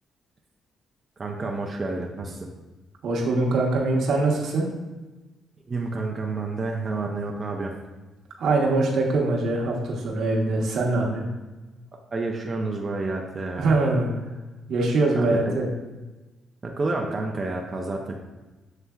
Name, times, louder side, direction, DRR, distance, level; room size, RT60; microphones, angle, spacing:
voice 1, 1.2-2.5 5.7-7.7 12.1-13.7 15.2-15.5 16.6-18.2, right 3 dB, 30° right, 0 dB, 0.5 m, -29 dB
voice 2, 3.0-4.6 8.4-11.3 13.6-14.2 14.7-15.7, right 2 dB, 70° right, -1 dB, 1.0 m, -23 dB
6.9 x 3.3 x 2.3 m, 1.1 s
cardioid pair, 90°, 0 cm